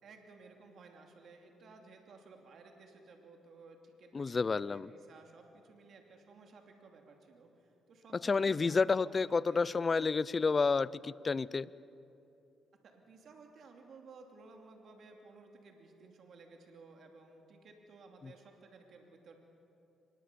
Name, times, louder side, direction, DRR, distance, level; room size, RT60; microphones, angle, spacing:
voice 1, 0.0-9.6 12.8-19.4, right 3 dB, 60° right, 3 dB, 2.8 m, -56 dB
voice 2, 4.1-4.9 8.2-11.7, left 4 dB, 35° left, 20 dB, 0.5 m, -30 dB
24.5 x 21.0 x 6.9 m, 2.8 s
cardioid pair, 90°, 0 cm